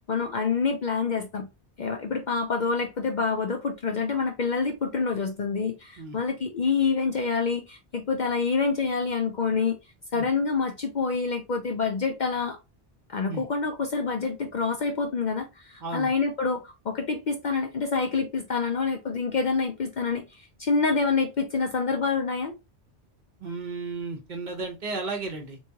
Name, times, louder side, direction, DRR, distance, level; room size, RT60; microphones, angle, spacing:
voice 1, 0.1-1.5 1.8-9.7 10.1-12.6 13.1-22.6, left 4 dB, 55° left, 0.6 m, -27 dB
voice 2, 23.4-25.6, right 3 dB, 45° right, 0.9 m, -34 dB
3.4 x 3.2 x 2.7 m
omnidirectional pair, 1.1 m